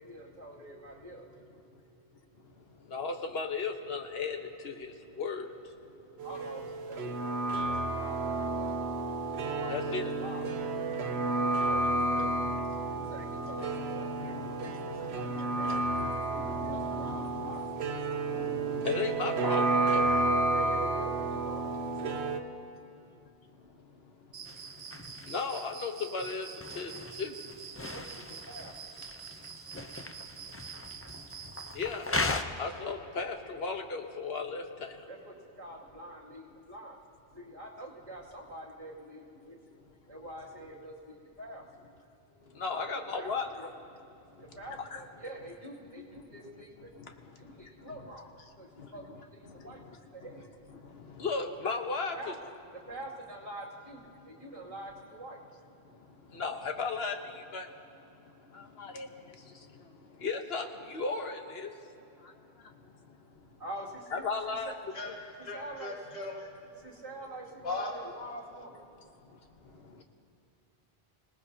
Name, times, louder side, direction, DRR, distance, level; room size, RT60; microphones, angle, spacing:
voice 1, 0.0-2.6 6.2-8.8 9.3-10.6 11.1-12.5 12.9-14.6 14.8-17.9 20.5-22.5 27.7-29.0 35.1-41.7 42.2-43.7 43.9-44.1 44.4-46.9 47.2-50.5 51.3-51.5 52.1-52.3 52.9-55.4 55.7-56.0 63.6-64.7 65.4-66.0 66.7-69.1 69.7-69.8, right 1 dB, 30° right, -4 dB, 2.6 m, -47 dB
voice 2, 2.4-6.0 9.7-10.1 13.0-13.1 14.2-15.7 16.0-17.6 18.1-20.1 20.4-20.5 23.0-23.1 23.5-27.7 30.1-30.9 31.2-31.3 31.7-35.1 42.4-43.5 44.3-44.4 44.8-45.0 46.0-46.1 46.9-47.7 48.8-50.0 50.7-52.3 55.8-63.6 64.1-64.7 69.3-69.4 69.6-70.0, left 4 dB, 70° left, 4 dB, 1.3 m, -38 dB
sound 1, 6.2-22.4, right 2 dB, 75° right, 1.1 m, -31 dB
Cricket, 24.3-31.8, right 7 dB, 50° right, 0.7 m, -46 dB
sound 2, 24.4-32.4, left 2 dB, 20° left, 0.4 m, -39 dB
voice 3, 65.4-66.3 67.6-67.9, left 3 dB, 40° left, -2 dB, 1.9 m, -37 dB
26.0 x 18.5 x 2.8 m, 2.9 s
omnidirectional pair, 1.1 m